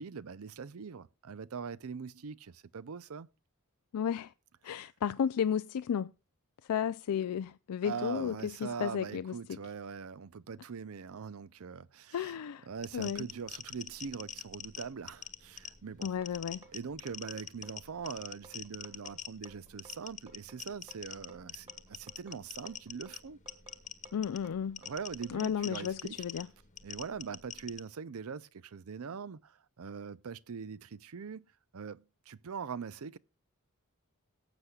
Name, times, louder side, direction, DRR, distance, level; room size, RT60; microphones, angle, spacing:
voice 1, 0.0-3.3 7.8-12.3 12.7-16.1 16.7-23.4 24.8-26.2 26.8-31.5 31.7-33.2, right 6 dB, 70° right, 0.5 m, -42 dB
voice 2, 3.9-4.3 4.6-6.1 6.6-9.6 12.1-12.7 12.9-13.3 16.0-16.6 24.1-24.8 25.3-26.5, left 8 dB, 90° left, 0.4 m, -33 dB
sound 1, 12.7-27.8, left 9 dB, 35° left, 1.2 m, -46 dB
sound 2, 16.2-26.0, right 3 dB, 25° right, 2.4 m, -57 dB
18.5 x 8.1 x 2.3 m
head